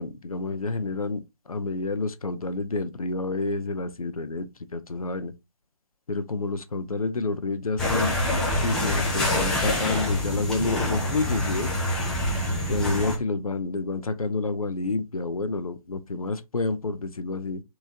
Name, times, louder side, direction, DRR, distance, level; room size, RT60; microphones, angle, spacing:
voice 1, 0.0-5.3 6.1-8.2 8.5-11.7 12.7-17.6, left 3 dB, 85° left, 0.6 m, -29 dB
sound 1, 7.8-13.2, left 1 dB, 5° left, 0.4 m, -26 dB
3.6 x 3.0 x 2.7 m
figure-of-eight pair, 145°, 18 cm